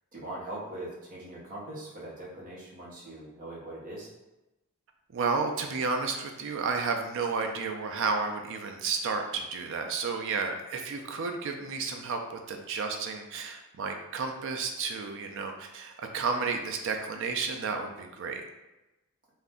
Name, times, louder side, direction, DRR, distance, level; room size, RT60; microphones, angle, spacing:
voice 1, 0.1-4.1, right 1 dB, 35° right, -5 dB, 0.7 m, -41 dB
voice 2, 5.1-12.2 12.5-18.4, right 4 dB, 55° right, 4 dB, 0.4 m, -32 dB
2.5 x 2.1 x 3.6 m, 1.0 s
head